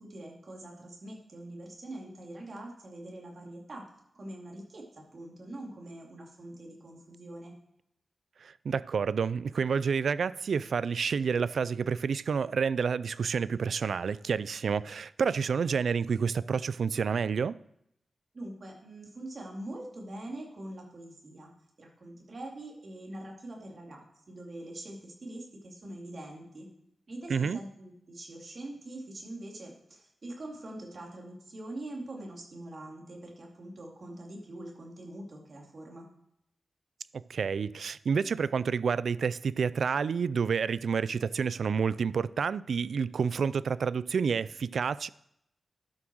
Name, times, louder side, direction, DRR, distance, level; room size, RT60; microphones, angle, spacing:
voice 1, 0.0-3.8 4.1-7.5 18.3-21.5 21.8-26.7 27.1-36.1, right 1 dB, 45° right, 2.9 m, -44 dB
voice 2, 8.4-17.6 27.3-27.6 37.1-45.1, right 6 dB, 75° right, 0.3 m, -29 dB
11.5 x 6.1 x 6.3 m
wide cardioid pair, 130°, 0 cm